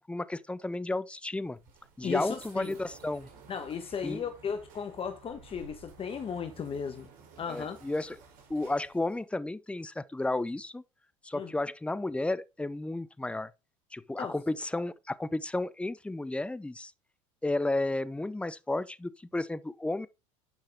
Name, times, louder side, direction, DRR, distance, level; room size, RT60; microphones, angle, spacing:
voice 1, 0.1-1.6 2.0-3.3 4.0-4.2 7.5-8.2 8.5-10.8 11.2-13.5 13.9-16.9 17.4-20.1, left 2 dB, 5° left, 0.7 m, -32 dB
sound 1, 1.4-9.2, right 5 dB, 55° right, 3.6 m, -54 dB
voice 2, 2.0-2.8 3.5-7.1 7.4-7.8 11.3-11.5 14.2-14.3, left 7 dB, 35° left, 1.3 m, -35 dB
9.6 x 5.8 x 3.6 m
hypercardioid pair, 85°, 17 cm